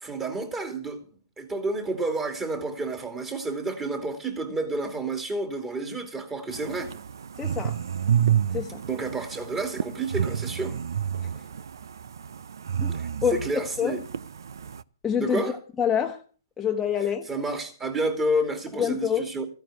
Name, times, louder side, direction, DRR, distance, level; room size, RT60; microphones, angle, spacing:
voice 1, 0.0-1.0 1.4-6.9 8.8-10.8 12.9-14.0 15.2-15.6 17.3-19.5, right 2 dB, 15° right, 2.6 m, -30 dB
sound 1, 6.5-14.8, right 9 dB, 70° right, 0.6 m, -30 dB
voice 2, 7.4-7.8 8.5-8.8 12.8-13.0 13.2-14.0 15.0-15.4 15.8-16.2 16.6-17.3 18.8-19.2, left 8 dB, 10° left, 1.1 m, -26 dB
14.5 x 9.1 x 6.7 m
hypercardioid pair, 140°, 2 cm